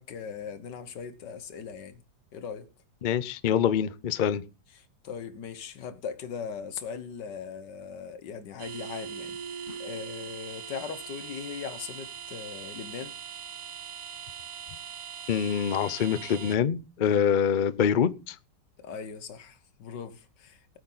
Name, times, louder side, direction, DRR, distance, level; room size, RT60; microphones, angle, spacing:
voice 1, 0.0-2.0 2.3-2.7 4.7-9.4 9.8-13.2 17.1-17.2 18.8-20.8, left 6 dB, 90° left, 1.8 m, -39 dB
voice 2, 3.0-4.4 9.7-9.8 15.3-18.4, left 8 dB, 65° left, 0.4 m, -25 dB
sound 1, 8.6-16.6, right 7 dB, 60° right, 1.4 m, -41 dB
18.5 x 8.9 x 4.0 m
omnidirectional pair, 1.8 m